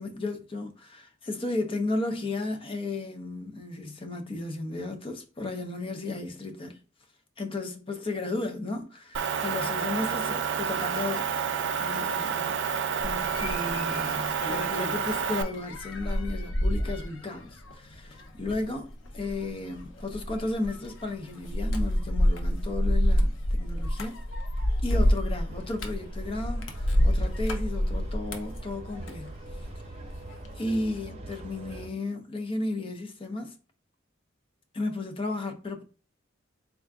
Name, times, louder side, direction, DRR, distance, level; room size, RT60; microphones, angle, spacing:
voice 1, 0.0-6.8 7.4-12.5 13.0-24.2 24.8-29.4 30.5-33.5 34.7-35.8, left 2 dB, 30° left, 0.5 m, -34 dB
Motor vehicle (road) / Engine, 9.1-15.4, right 6 dB, 65° right, 0.4 m, -29 dB
sound 1, 13.0-29.7 30.0-30.5, equal, 80° left, 0.6 m, -28 dB
sound 2, 25.5-31.9, right 2 dB, 35° right, 0.7 m, -44 dB
3.7 x 2.4 x 3.4 m
head